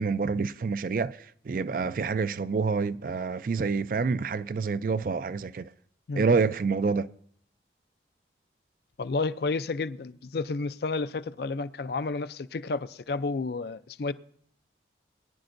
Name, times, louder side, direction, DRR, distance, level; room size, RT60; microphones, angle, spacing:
voice 1, 0.0-5.7 6.1-7.1, right 4 dB, 50° right, 0.3 m, -27 dB
voice 2, 9.0-14.1, left 3 dB, 60° left, 0.4 m, -31 dB
22.0 x 10.5 x 2.6 m
head